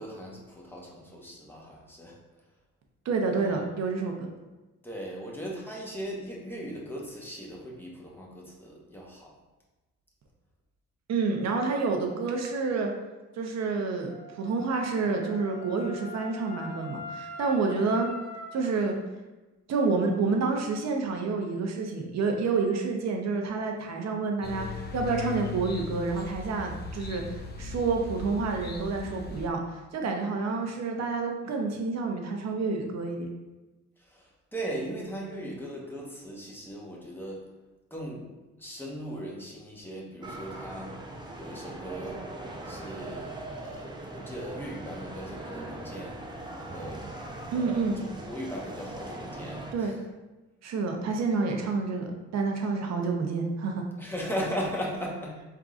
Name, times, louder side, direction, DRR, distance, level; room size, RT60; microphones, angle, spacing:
voice 1, 0.0-2.2 3.3-3.6 4.8-9.3 34.0-37.5 37.9-38.3 38.6-41.0 41.3-42.2 42.6-43.4 43.6-46.1 46.6-47.1 47.5-50.0 54.0-55.4, equal, 5° left, -3 dB, 1.1 m, -38 dB
voice 2, 3.0-4.3 11.1-12.9 13.4-18.1 18.5-19.0 19.7-24.7 24.9-29.6 29.9-33.3 47.5-48.0 49.7-50.0 50.6-53.8, right 4 dB, 60° right, 2 dB, 0.8 m, -29 dB
Wind instrument woodwind instrument, 14.1-18.8, left 1 dB, 75° left, 1.4 m, -43 dB
sound 1, 24.4-29.5, left 4 dB, 35° left, 0.6 m, -38 dB
sound 2, 40.2-49.7, right 2 dB, 15° right, 0.6 m, -40 dB
4.6 x 3.7 x 2.5 m, 1.1 s
cardioid pair, 90°, 30 cm